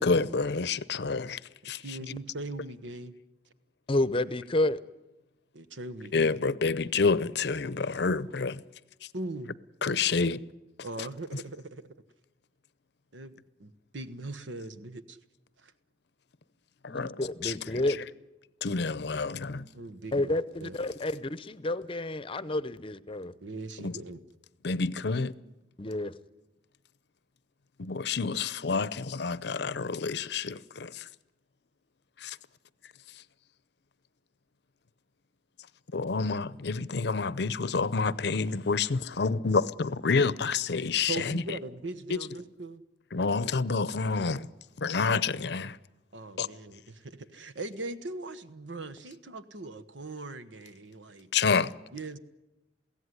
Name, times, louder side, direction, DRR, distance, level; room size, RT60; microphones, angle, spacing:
voice 1, 0.0-1.4 1.6-2.0 6.1-8.6 9.8-10.4 11.0-11.1 16.8-17.5 18.6-19.7 23.8-24.0 24.6-25.3 27.8-31.1 32.2-32.4 35.9-41.4 42.1-42.2 43.1-44.5 44.8-45.8 46.4-46.5 51.3-51.7, left 4 dB, 65° left, 0.7 m, -28 dB
voice 2, 1.8-3.1 5.5-6.3 9.1-9.6 10.8-11.8 13.1-15.2 15.6-15.7 19.7-20.8 23.4-24.2 41.1-42.8 46.1-51.3 51.9-52.2, right 2 dB, 90° right, 1.2 m, -40 dB
voice 3, 3.9-4.8 16.9-18.0 20.1-23.3 25.8-26.1, left 1 dB, 30° left, 0.7 m, -30 dB
22.5 x 16.5 x 9.8 m
head